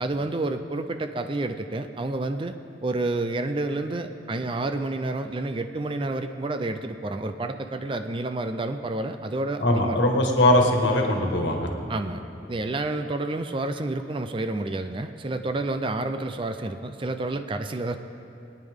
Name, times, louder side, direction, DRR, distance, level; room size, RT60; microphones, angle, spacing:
voice 1, 0.0-2.6 2.8-10.0 11.9-12.2 12.5-18.0, right 2 dB, 25° right, 8 dB, 0.4 m, -29 dB
voice 2, 9.6-11.7, left 1 dB, 75° left, 2 dB, 1.5 m, -21 dB
21.5 x 9.7 x 3.6 m, 3.0 s
head